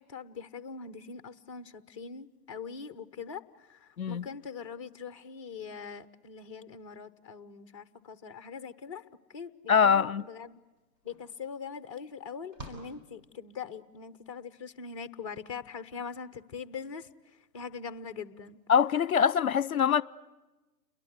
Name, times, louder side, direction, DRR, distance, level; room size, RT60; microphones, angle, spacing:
voice 1, 0.0-9.0 9.3-10.6 11.0-18.6, left 6 dB, 20° left, 0.8 m, -42 dB
voice 2, 9.7-10.2 18.7-20.0, left 7 dB, 60° left, 0.9 m, -23 dB
sound 1, 10.4-10.5 10.8-13.8, equal, 25° right, 7.2 m, -50 dB
30.0 x 22.5 x 7.9 m
figure-of-eight pair, 145°, 49 cm